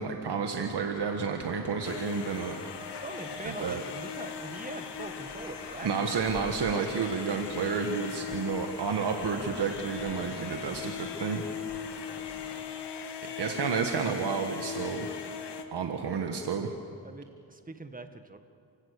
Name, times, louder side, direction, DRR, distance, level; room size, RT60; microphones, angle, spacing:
voice 1, 0.0-2.6 3.4-3.8 5.8-11.4 13.4-15.1 15.7-16.7, right 5 dB, 65° right, 4 dB, 1.6 m, -31 dB
sound 1, 0.9-12.6, left 3 dB, 50° left, 2.6 m, -48 dB
sound 2, 1.8-15.6, left 7 dB, 70° left, 1.8 m, -39 dB
voice 2, 3.0-5.9 11.9-12.2 12.5-12.8 13.3-13.6 17.0-18.4, right 3 dB, 20° right, 8 dB, 1.8 m, -43 dB
29.5 x 17.0 x 6.8 m, 2.4 s
cardioid pair, 70°, 43 cm